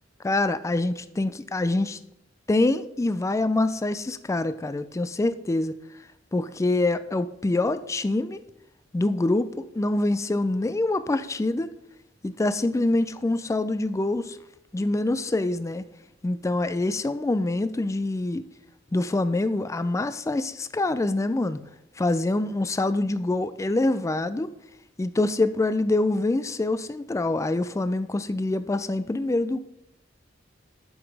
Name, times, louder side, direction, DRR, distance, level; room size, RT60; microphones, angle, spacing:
voice 1, 0.2-2.0 2.5-5.8 6.3-8.4 8.9-11.7 12.2-14.4 14.7-15.8 16.2-18.5 18.9-21.6 22.0-24.5 25.0-29.6, left 2 dB, 15° left, 0.3 m, -25 dB
7.8 x 5.8 x 5.2 m
head